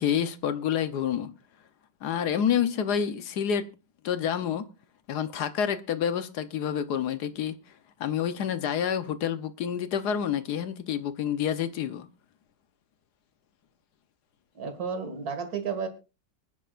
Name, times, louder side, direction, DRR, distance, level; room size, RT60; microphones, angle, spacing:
voice 1, 0.0-1.3 2.0-3.7 4.0-4.7 5.1-7.6 8.0-12.1, left 8 dB, 65° left, 1.3 m, -28 dB
voice 2, 14.5-15.9, right 6 dB, 55° right, 2.3 m, -32 dB
24.0 x 10.0 x 2.5 m
omnidirectional pair, 1.9 m